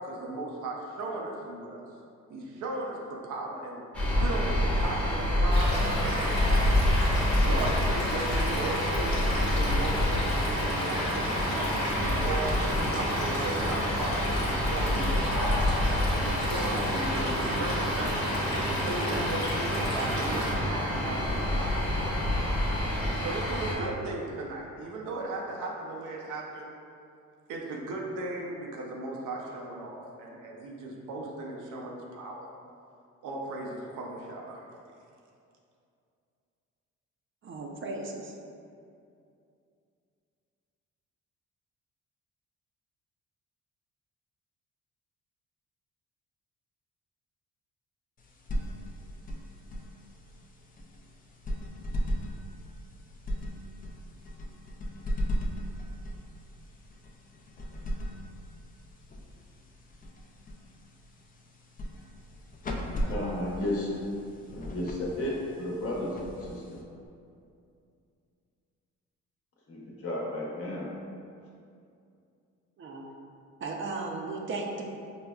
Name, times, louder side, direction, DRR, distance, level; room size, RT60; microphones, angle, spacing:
voice 1, 0.0-1.8 2.3-3.9 4.2-6.7 7.4-12.6 12.9-15.7 16.2-21.9 23.2-26.7 27.5-32.5 33.2-34.7, right 2 dB, 90° right, -1 dB, 0.6 m, -37 dB
sound 1, 3.9-23.7, left 1 dB, 5° left, 0.8 m, -28 dB
Stream / Liquid, 5.5-20.5, left 1 dB, 85° left, 1.0 m, -33 dB
voice 2, 37.4-38.3 72.8-73.0 73.6-74.9, right 3 dB, 40° right, 1 dB, 0.5 m, -35 dB
sound 2, 48.2-67.1, equal, 30° left, 0.4 m, -37 dB
voice 3, 63.1-63.9 64.5-66.8 69.7-70.9, left 1 dB, 50° left, -4 dB, 0.9 m, -33 dB
5.0 x 2.2 x 2.3 m, 2.5 s
cardioid pair, 90°, 30 cm